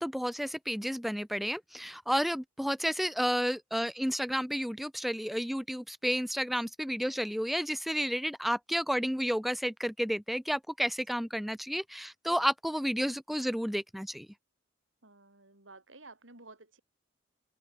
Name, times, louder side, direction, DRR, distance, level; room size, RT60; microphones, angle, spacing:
voice 1, 0.0-14.3, equal, ahead, 1.1 m, -31 dB
voice 2, 15.0-16.8, right 3 dB, 80° right, 6.0 m, -53 dB
open air
head